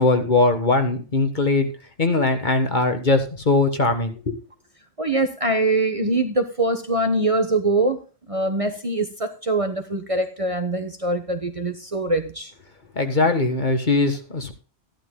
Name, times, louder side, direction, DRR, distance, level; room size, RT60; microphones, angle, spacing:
voice 1, 0.0-1.7 2.0-4.3 12.9-14.5, left 3 dB, 40° left, 7 dB, 1.5 m, -20 dB
voice 2, 5.0-8.0 8.3-12.5, right 2 dB, 30° right, 7 dB, 1.1 m, -23 dB
15.0 x 12.0 x 2.2 m, 0.34 s
omnidirectional pair, 1.3 m